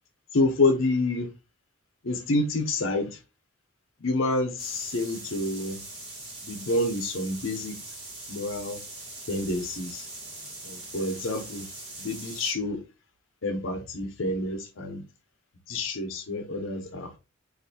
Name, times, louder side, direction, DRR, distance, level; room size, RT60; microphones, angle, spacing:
voice 1, 0.3-1.3 2.0-3.1 4.0-5.8 6.4-7.7 8.3-8.8 9.3-10.1 10.6-11.7 12.0-12.8 13.4-15.0 15.7-17.2, left 2 dB, 70° left, 0.8 m, -28 dB
sound 1, 4.6-12.5, right 2 dB, 50° right, 1.5 m, -42 dB
4.3 x 2.6 x 2.7 m
head